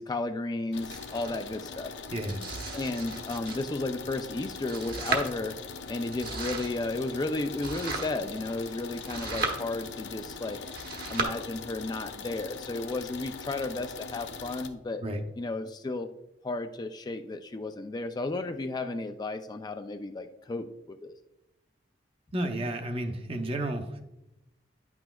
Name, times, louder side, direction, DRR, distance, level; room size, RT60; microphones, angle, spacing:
voice 1, 0.0-1.9 2.7-5.5 5.9-10.6 11.1-15.0 15.4-16.1 16.4-21.1, left 2 dB, 25° left, 7 dB, 0.3 m, -33 dB
sound 1, 0.7-14.7, left 5 dB, 85° left, 0.6 m, -42 dB
Domestic sounds home sounds, 0.9-11.2, right 3 dB, 55° right, 1.2 m, -37 dB
voice 2, 2.1-2.4 15.0-15.2 22.3-24.0, right 1 dB, 30° right, 4 dB, 0.7 m, -32 dB
9.7 x 6.1 x 2.3 m, 0.91 s
head